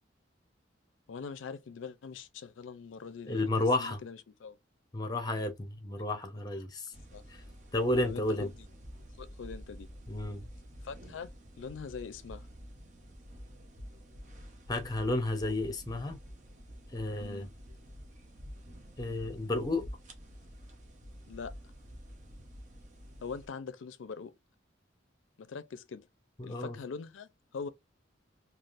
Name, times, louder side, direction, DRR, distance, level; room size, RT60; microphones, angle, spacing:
voice 1, 1.1-4.6 7.1-7.2 8.0-8.7 9.2-9.9 10.8-11.3 11.6-12.5 17.2-17.5 21.3-21.5 23.2-24.4 25.4-26.1 26.4-27.7, left 5 dB, 75° left, 0.4 m, -43 dB
voice 2, 3.3-4.0 4.9-6.9 7.7-8.5 10.1-10.5 14.7-16.2 16.9-17.5 19.0-19.9 26.4-26.7, left 2 dB, 20° left, 0.7 m, -32 dB
sound 1, 6.9-23.5, equal, 40° right, 0.7 m, -49 dB
3.4 x 2.3 x 2.4 m
head